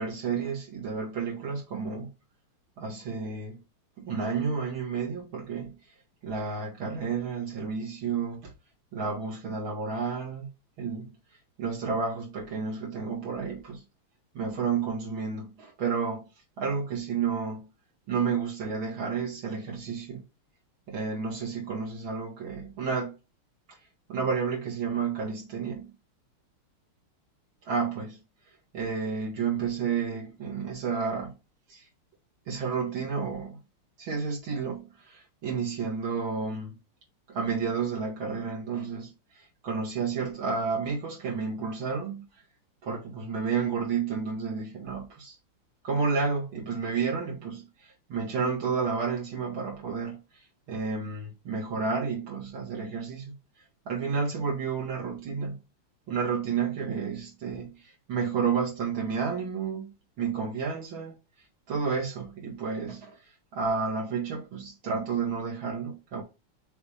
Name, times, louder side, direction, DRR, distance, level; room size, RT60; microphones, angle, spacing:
voice 1, 0.0-2.1 2.8-3.6 4.0-5.7 6.2-8.5 8.9-10.5 10.8-11.1 11.6-13.8 14.3-16.3 16.6-17.7 18.1-20.2 20.9-23.1 24.1-25.9 27.7-28.2 28.7-31.3 31.7-31.9 32.5-33.6 34.0-36.7 37.3-42.3 42.8-45.4 45.8-47.7 48.1-50.2 50.7-53.3 53.9-55.6 56.1-61.1 61.7-63.2 63.5-66.2, right 5 dB, 65° right, 2.5 m, -31 dB
6.9 x 3.3 x 4.3 m
omnidirectional pair, 2.4 m